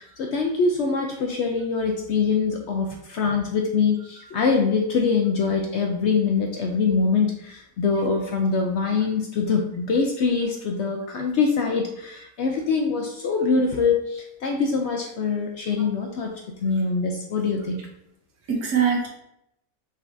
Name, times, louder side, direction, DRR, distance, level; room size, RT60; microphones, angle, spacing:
voice 1, 0.0-17.8, left 5 dB, 70° left, 2 dB, 0.7 m, -24 dB
voice 2, 18.5-19.1, right 7 dB, 80° right, 0 dB, 1.5 m, -25 dB
5.4 x 3.5 x 2.5 m, 0.79 s
omnidirectional pair, 1.6 m